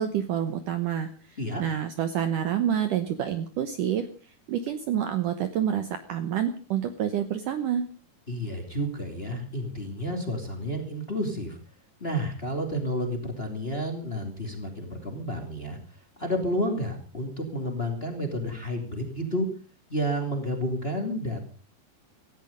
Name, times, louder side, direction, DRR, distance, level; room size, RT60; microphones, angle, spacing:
voice 1, 0.0-4.1 4.5-7.9, right 9 dB, 70° right, 9 dB, 2.1 m, -28 dB
voice 2, 8.3-11.6 12.0-15.8 16.2-19.5 19.9-21.4, equal, 20° left, 4 dB, 2.2 m, -30 dB
17.5 x 14.5 x 5.2 m, 0.39 s
omnidirectional pair, 4.7 m